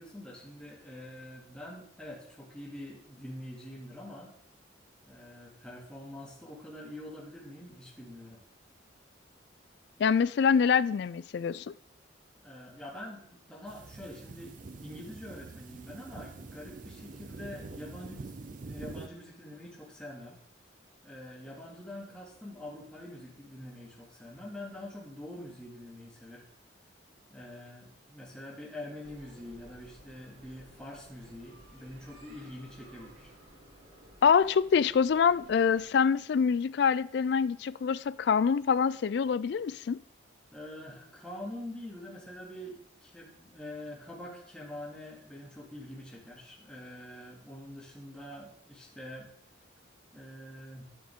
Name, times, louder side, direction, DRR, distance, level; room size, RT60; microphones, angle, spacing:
voice 1, 0.0-4.3 5.0-8.4 12.4-20.4 21.0-26.4 27.3-33.3 40.5-49.3 50.1-50.8, left 1 dB, 5° left, 2.2 m, -45 dB
voice 2, 10.0-11.7 34.2-40.0, left 6 dB, 60° left, 0.3 m, -25 dB
sound 1, 13.7-19.1, right 3 dB, 45° right, 0.4 m, -45 dB
sound 2, 29.0-35.8, right 1 dB, 80° right, 4.4 m, -55 dB
9.7 x 8.5 x 3.7 m
head